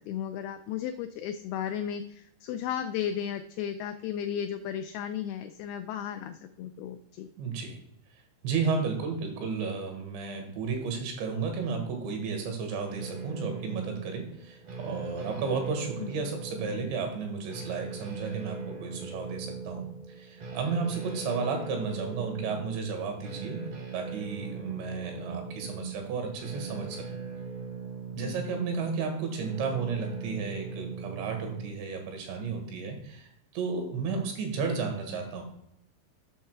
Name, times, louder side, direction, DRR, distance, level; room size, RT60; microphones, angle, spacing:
voice 1, 0.0-7.3 16.0-16.3 28.2-28.4, left 9 dB, 90° left, 8 dB, 2.2 m, -35 dB
voice 2, 7.4-7.8 8.4-27.0 28.1-35.4, right 5 dB, 85° right, 4 dB, 3.9 m, -33 dB
sound 1, 12.9-31.7, right 5 dB, 65° right, 1.4 m, -40 dB
8.5 x 6.5 x 4.6 m, 0.75 s
omnidirectional pair, 5.1 m